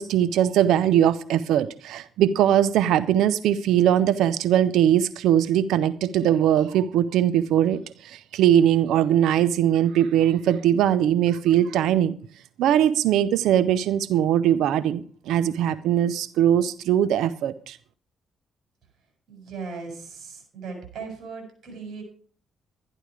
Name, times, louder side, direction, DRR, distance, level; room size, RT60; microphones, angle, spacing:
voice 1, 0.0-7.8 8.0-12.1 12.6-17.8, right 10 dB, 85° right, 0.6 m, -21 dB
voice 2, 19.3-22.0, right 4 dB, 60° right, 6.9 m, -38 dB
12.5 x 11.0 x 4.9 m
cardioid pair, 90°, 0 cm